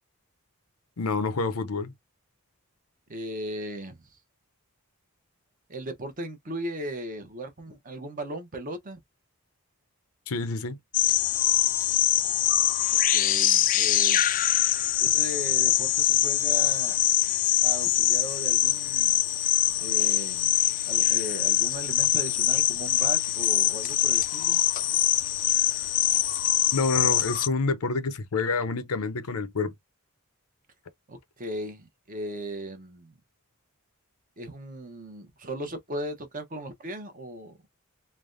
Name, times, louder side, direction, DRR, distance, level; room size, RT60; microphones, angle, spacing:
voice 1, 1.0-1.9 10.3-10.8 26.7-29.7, left 4 dB, 75° left, 0.6 m, -28 dB
voice 2, 3.1-4.0 5.7-9.0 13.1-14.2 15.0-17.0 17.6-19.1 19.8-20.6 20.9-24.6 31.1-33.1 34.4-37.6, right 1 dB, 35° right, 0.7 m, -37 dB
sound 1, 10.9-27.5, left 13 dB, 35° left, 0.3 m, -23 dB
3.3 x 2.1 x 2.5 m
head